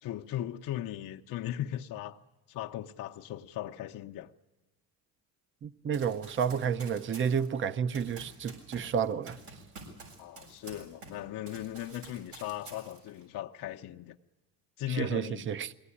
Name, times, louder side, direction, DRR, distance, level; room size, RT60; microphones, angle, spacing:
voice 1, 0.0-2.2 2.5-4.3 10.2-14.2 14.8-15.5, left 12 dB, 50° left, 0.8 m, -38 dB
voice 2, 5.6-9.4 14.9-15.7, right 7 dB, 30° right, 0.7 m, -31 dB
Run, 5.9-11.2 11.5-13.2, right 3 dB, 90° right, 7.7 m, -49 dB
22.5 x 17.5 x 9.8 m
cardioid pair, 110°, 42 cm